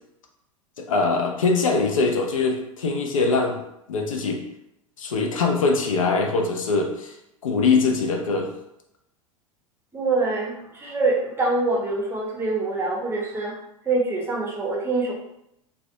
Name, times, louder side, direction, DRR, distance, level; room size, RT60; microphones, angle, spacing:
voice 1, 0.8-3.6 3.9-4.4 5.0-7.1 7.4-8.5, left 4 dB, 70° left, 3 dB, 0.4 m, -22 dB
voice 2, 9.9-13.6 13.8-15.1, right 3 dB, 15° right, -3 dB, 0.6 m, -25 dB
2.4 x 2.2 x 2.5 m, 0.82 s
figure-of-eight pair, 85°, 18 cm